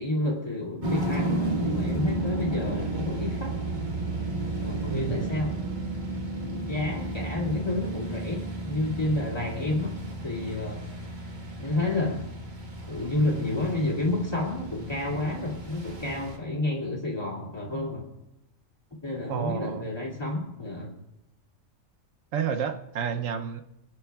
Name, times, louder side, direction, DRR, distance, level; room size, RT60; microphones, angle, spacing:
voice 1, 0.0-3.6 4.6-5.5 6.5-9.9 10.2-10.8 11.6-12.3 12.9-18.1 19.0-21.0, left 2 dB, 20° left, -3 dB, 2.3 m, -30 dB
sound 1, 0.8-16.4, right 2 dB, 35° right, 1.5 m, -33 dB
voice 2, 4.9-5.3 19.3-19.9 22.3-23.6, right 8 dB, 75° right, 8 dB, 1.0 m, -30 dB
25.5 x 8.6 x 2.3 m, 0.92 s
omnidirectional pair, 1.4 m